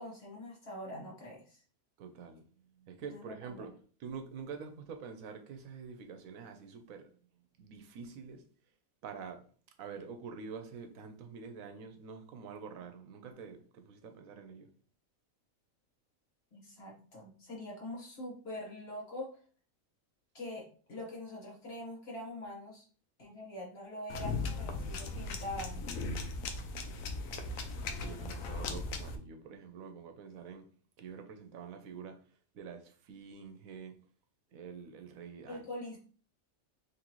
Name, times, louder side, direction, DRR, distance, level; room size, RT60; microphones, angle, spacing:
voice 1, 0.0-1.6 3.0-3.7 16.5-19.3 20.3-22.8 23.2-25.8 35.5-36.0, left 1 dB, 45° left, 1.4 m, -44 dB
voice 2, 2.0-2.4 2.8-3.7 4.0-7.1 7.6-8.4 9.0-9.4 9.8-14.7 27.9-30.7 31.0-32.2 32.5-34.0 34.5-35.6, right 6 dB, 75° right, 1.0 m, -46 dB
sound 1, 24.1-29.2, left 3 dB, 75° left, 1.0 m, -38 dB
3.9 x 3.0 x 3.0 m
omnidirectional pair, 1.5 m